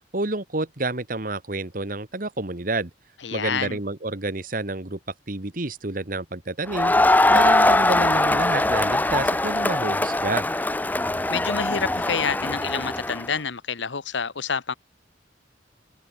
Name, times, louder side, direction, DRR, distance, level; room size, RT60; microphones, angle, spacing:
voice 1, 0.1-2.9 3.3-5.0 5.3-6.9 7.3-10.5, right 2 dB, 50° right, 1.6 m, -29 dB
voice 2, 3.2-3.8 11.3-14.7, left 6 dB, 85° left, 1.1 m, -28 dB
Crowd, 6.7-13.3, left 2 dB, 10° left, 0.5 m, -21 dB
head